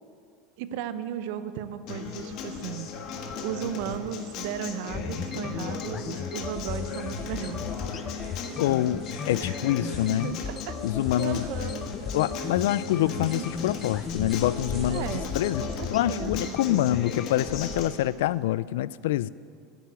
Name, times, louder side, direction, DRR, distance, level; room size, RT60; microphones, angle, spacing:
voice 1, 0.6-2.9 3.2-7.6 8.2-8.3 9.4-9.6 9.8-10.8 11.2-11.8 13.2-13.5 14.9-15.3 15.6-16.8, right 10 dB, 65° right, 12 dB, 0.7 m, -36 dB
Acoustic guitar, 1.9-17.9, left 5 dB, 50° left, 1.5 m, -37 dB
sound 1, 2.1-17.3, left 7 dB, 25° left, 0.6 m, -37 dB
sound 2, 6.5-17.8, right 1 dB, 10° right, 3.6 m, -47 dB
voice 2, 8.6-10.3 10.8-11.5 12.0-15.6 15.9-19.3, left 14 dB, 85° left, 20 dB, 0.3 m, -26 dB
10.5 x 8.2 x 9.8 m, 2.3 s
supercardioid pair, 140°, 0 cm